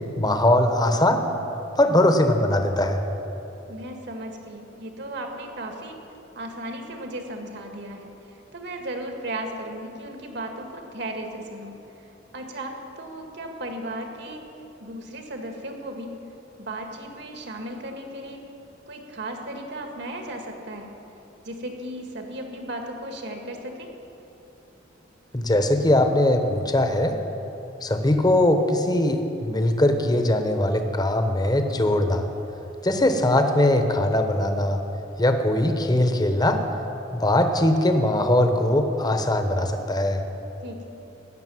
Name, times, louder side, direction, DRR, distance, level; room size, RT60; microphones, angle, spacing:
voice 1, 0.2-1.2 1.8-3.0 25.3-27.1 27.8-32.3 32.8-34.8 35.2-36.6 37.2-40.2, left 1 dB, 20° left, 6 dB, 1.0 m, -21 dB
voice 2, 3.7-6.0 6.3-11.7 12.3-14.4 14.8-16.2 16.6-18.4 18.9-20.9 21.4-23.9 40.6-40.9, right 1 dB, 65° right, 3 dB, 1.8 m, -35 dB
15.5 x 6.6 x 9.4 m, 3.0 s
head